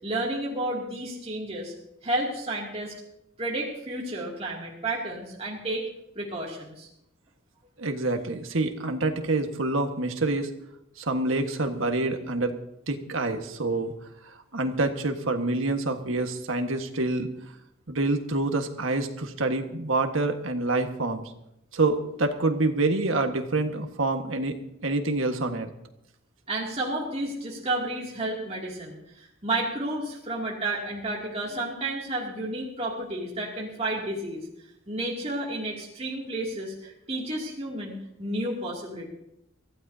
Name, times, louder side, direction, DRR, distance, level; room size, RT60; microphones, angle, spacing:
voice 1, 0.0-1.7 2.0-2.9 3.4-5.9 6.1-6.9 26.5-34.5 34.9-37.9 38.2-39.1, right 1 dB, 30° right, -4 dB, 2.6 m, -31 dB
voice 2, 7.8-10.5 11.0-12.5 12.9-13.9 14.3-17.3 17.9-21.2 21.7-24.6 24.8-25.7, right 2 dB, 75° right, 5 dB, 1.6 m, -27 dB
24.0 x 15.5 x 2.8 m, 0.83 s
head